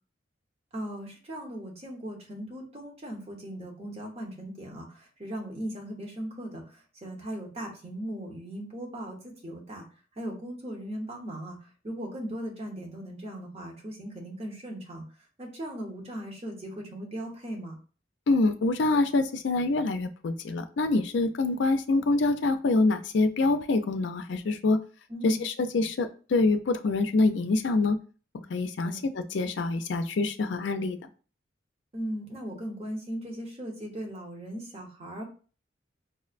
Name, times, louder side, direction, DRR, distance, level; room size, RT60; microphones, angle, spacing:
voice 1, 0.7-9.8 10.2-15.0 15.4-17.7 25.1-25.4 28.8-29.0 31.9-35.2, right 1 dB, 35° right, 0 dB, 0.9 m, -38 dB
voice 2, 18.3-24.8 25.2-28.0 28.5-31.0, left 3 dB, 65° left, 8 dB, 0.4 m, -25 dB
5.4 x 2.1 x 2.4 m, 0.38 s
head